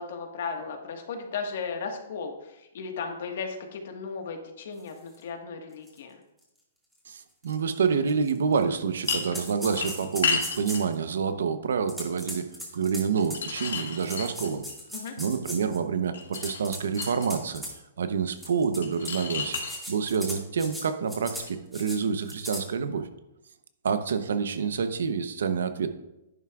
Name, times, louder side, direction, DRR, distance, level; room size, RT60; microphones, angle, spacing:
voice 1, 0.0-6.2 14.9-15.1, left 5 dB, 60° left, 3 dB, 1.6 m, -36 dB
sound 1, 5.1-5.2 5.9-6.0 6.4-6.5 7.4-7.5 8.1-8.6 9.0-10.9 11.9-13.5 14.0-15.8 16.2-17.7 18.4-19.1 19.4-20.8 21.1-21.5 21.7-22.0 22.3-22.6, equal, ahead, 2.2 m, -38 dB
voice 2, 7.1-12.5 12.7-14.6 15.2-17.6 18.0-19.6 19.9-23.1 23.8-25.9, right 6 dB, 80° right, 9 dB, 0.9 m, -28 dB
sound 2, 9.1-9.4 9.7-10.9 13.2-14.7 16.1-17.3 18.8-19.8 21.4-21.5, left 5 dB, 85° left, 2.1 m, -31 dB
10.5 x 9.5 x 2.5 m, 0.93 s
hypercardioid pair, 150°, 0 cm